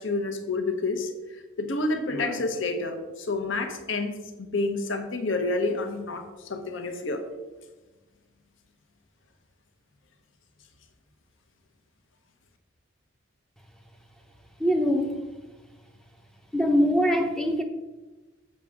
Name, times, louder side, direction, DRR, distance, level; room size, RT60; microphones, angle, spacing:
voice 1, 0.0-7.2, left 2 dB, 70° left, 6 dB, 0.9 m, -29 dB
voice 2, 14.6-15.2 16.5-17.6, equal, 5° left, 3 dB, 0.5 m, -23 dB
7.3 x 6.3 x 3.6 m, 1.2 s
head